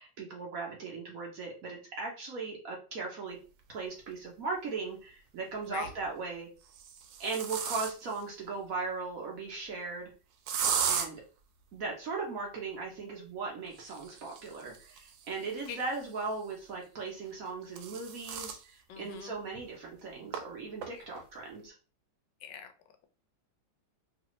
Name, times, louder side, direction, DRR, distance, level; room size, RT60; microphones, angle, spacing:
voice 1, 0.0-3.4 3.7-6.5 7.2-10.1 10.9-11.2 11.7-21.7, right 4 dB, 60° right, -1 dB, 1.0 m, -38 dB
sound 1, 4.1-4.2 5.6-6.1 6.6-8.2 10.5-11.1 13.7-16.3 17.3-18.6 19.1-19.2 19.6-19.7 20.3-20.4 20.8-21.2, right 7 dB, 80° right, 1.3 m, -36 dB
voice 2, 18.9-19.3 20.9-21.0 22.4-22.7, left 7 dB, 80° left, 7 dB, 1.2 m, -43 dB
3.1 x 2.5 x 3.0 m, 0.35 s
omnidirectional pair, 2.0 m